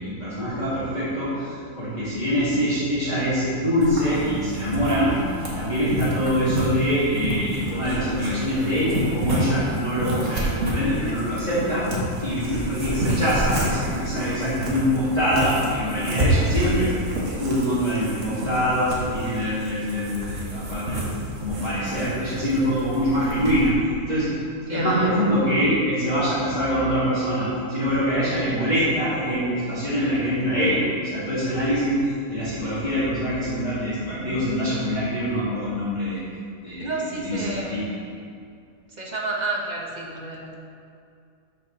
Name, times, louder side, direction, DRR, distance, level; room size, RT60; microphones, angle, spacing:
voice 1, 0.0-5.2 5.5-11.8 12.2-16.9 17.2-21.0 21.4-23.7 24.1-24.3 24.7-36.2 36.6-37.8, equal, 30° left, -13 dB, 2.3 m, -24 dB
sound 1, 3.8-23.7, right 1 dB, 55° right, 1.9 m, -29 dB
voice 2, 24.7-25.2 36.8-37.8 38.9-40.5, right 2 dB, 35° right, -1 dB, 0.9 m, -31 dB
12.5 x 5.3 x 3.9 m, 2.4 s
omnidirectional pair, 1.6 m